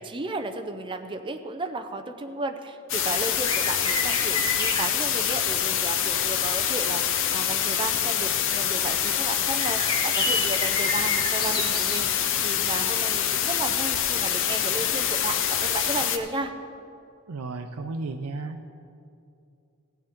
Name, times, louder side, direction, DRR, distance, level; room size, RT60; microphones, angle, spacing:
voice 1, 0.0-7.0 7.3-16.5, right 2 dB, 20° right, 6 dB, 0.5 m, -34 dB
sound 1, 2.9-16.2, left 9 dB, 60° left, 0.6 m, -25 dB
sound 2, 3.4-5.7 6.6-6.7 7.6-7.7 9.5-12.0 13.5-13.7 16.3-16.4, left 2 dB, 20° left, 1.1 m, -30 dB
voice 2, 17.3-18.7, right 3 dB, 85° right, 5 dB, 0.5 m, -34 dB
16.0 x 9.2 x 3.6 m, 2.6 s
head